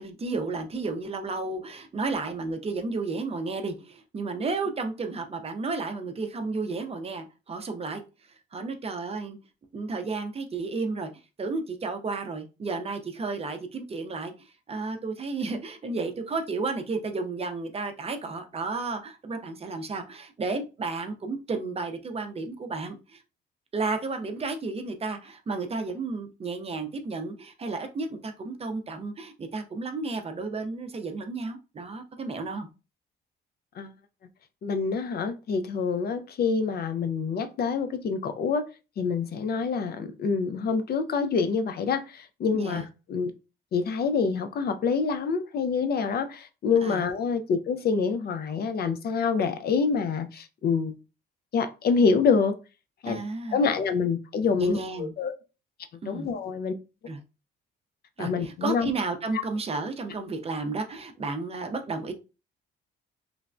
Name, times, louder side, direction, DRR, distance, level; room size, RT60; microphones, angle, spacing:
voice 1, 0.0-8.0 8.5-9.4 9.7-11.1 11.4-23.2 23.7-32.7 42.5-42.8 46.8-47.1 53.1-53.8 54.5-55.1 56.0-56.3 57.1-57.2 58.2-62.1, right 3 dB, 30° right, 0.5 m, -32 dB
voice 2, 34.6-38.6 39.0-43.3 43.7-51.0 51.5-52.5 53.0-53.2 53.5-55.3 56.1-56.8 58.2-58.9, left 5 dB, 50° left, 0.4 m, -26 dB
3.2 x 2.1 x 2.4 m
cardioid pair, 90°, 20 cm